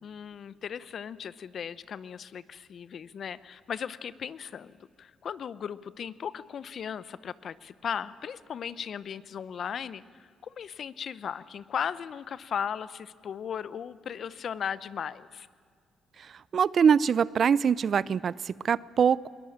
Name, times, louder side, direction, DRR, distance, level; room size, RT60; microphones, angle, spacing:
voice 1, 0.0-10.0 10.4-15.5, left 8 dB, 55° left, 17 dB, 0.8 m, -37 dB
voice 2, 16.2-19.3, right 7 dB, 50° right, 21 dB, 0.5 m, -24 dB
22.0 x 20.0 x 8.7 m, 2.2 s
cardioid pair, 90°, 0 cm